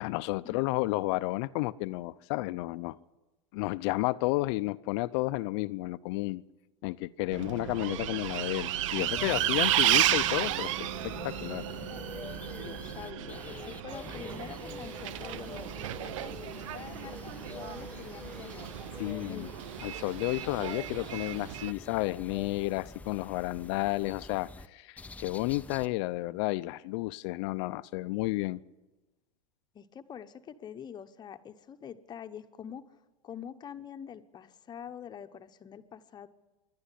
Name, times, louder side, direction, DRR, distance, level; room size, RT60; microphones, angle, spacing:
voice 1, 0.0-3.0 3.5-6.4 6.8-11.6 19.0-19.5 19.8-28.6, left 20 dB, 55° left, 14 dB, 0.6 m, -32 dB
Bus, 7.3-21.7, right 13 dB, 70° right, 0.6 m, -33 dB
sound 1, 9.0-24.7 25.0-25.9, left 3 dB, 10° left, 0.6 m, -46 dB
sound 2, 9.5-22.4, right 6 dB, 50° right, 3.7 m, -53 dB
voice 2, 12.5-18.7 19.2-19.4 29.7-36.3, left 8 dB, 25° left, 9 dB, 1.0 m, -46 dB
26.0 x 11.5 x 9.9 m, 1.1 s
supercardioid pair, 130°, 17 cm